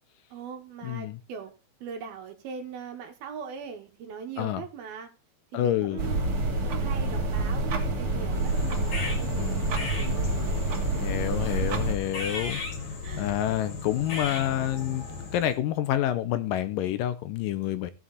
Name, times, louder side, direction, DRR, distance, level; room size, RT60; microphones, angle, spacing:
voice 1, 0.3-1.5 1.8-5.1 5.5-6.4 6.7-10.6 11.4-11.6 13.0-13.4, right 6 dB, 80° right, 3.6 m, -41 dB
voice 2, 0.8-1.2 4.4-4.6 5.5-6.0 9.4-9.6 11.0-12.6 13.1-15.0 15.3-17.9, left 12 dB, 75° left, 2.3 m, -28 dB
sound 1, 6.0-11.9, right 2 dB, 45° right, 2.5 m, -27 dB
sound 2, 8.3-15.6, left 3 dB, 50° left, 3.7 m, -36 dB
15.5 x 7.7 x 4.2 m
omnidirectional pair, 4.3 m